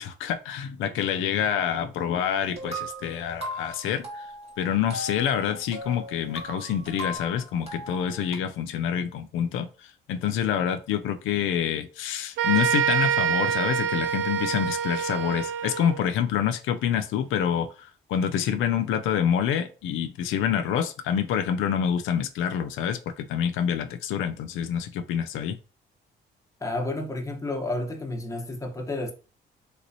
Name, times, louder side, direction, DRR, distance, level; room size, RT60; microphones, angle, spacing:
voice 1, 0.0-4.3 4.6-25.6, left 8 dB, 85° left, 0.4 m, -27 dB
sound 1, 2.3-8.4, equal, 30° right, 1.3 m, -38 dB
sound 2, 12.4-16.0, right 8 dB, 80° right, 0.4 m, -26 dB
voice 2, 26.6-29.1, left 2 dB, 15° left, 0.9 m, -31 dB
3.3 x 3.0 x 2.7 m
cardioid pair, 90°, 20 cm